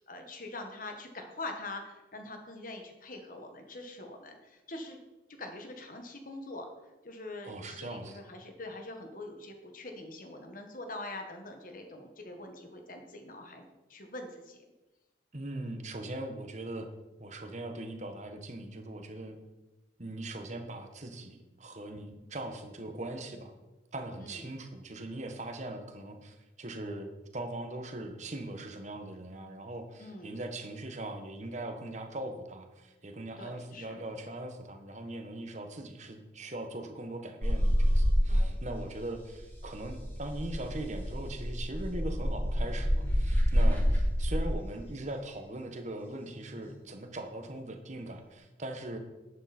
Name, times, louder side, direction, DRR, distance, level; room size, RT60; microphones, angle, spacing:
voice 1, 0.0-5.0 5.4-6.7 7.0-14.6 24.2-24.5 30.0-30.4 33.4-34.0 38.3-38.6 43.5-43.9 48.9-49.0, left 2 dB, 50° left, 4 dB, 1.6 m, -44 dB
voice 2, 7.4-8.2 15.3-16.9 17.2-19.4 20.0-23.5 23.9-49.0, right 1 dB, 40° right, 6 dB, 1.3 m, -40 dB
sound 1, 37.4-38.8 39.1-44.5 46.3-46.7, equal, 10° left, 4.3 m, -27 dB
11.0 x 8.9 x 4.4 m, 1.1 s
head